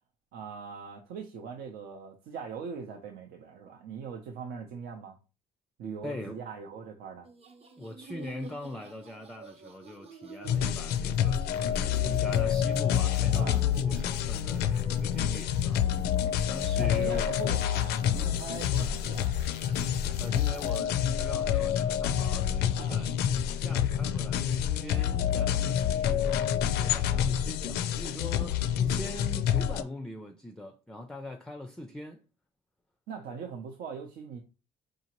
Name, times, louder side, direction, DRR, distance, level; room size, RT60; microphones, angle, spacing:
voice 1, 0.3-5.2 5.8-7.3 13.3-13.6 16.8-19.4 22.8-23.0 33.1-34.4, right 6 dB, 80° right, 0.6 m, -41 dB
voice 2, 6.0-6.5 7.8-15.9 16.5-17.3 20.2-32.2, left 1 dB, 5° left, 0.4 m, -42 dB
sound 1, 7.2-20.8, right 4 dB, 35° right, 0.7 m, -50 dB
sound 2, 10.4-29.8, left 9 dB, 75° left, 0.4 m, -28 dB
4.9 x 2.7 x 2.9 m
cardioid pair, 110°, 17 cm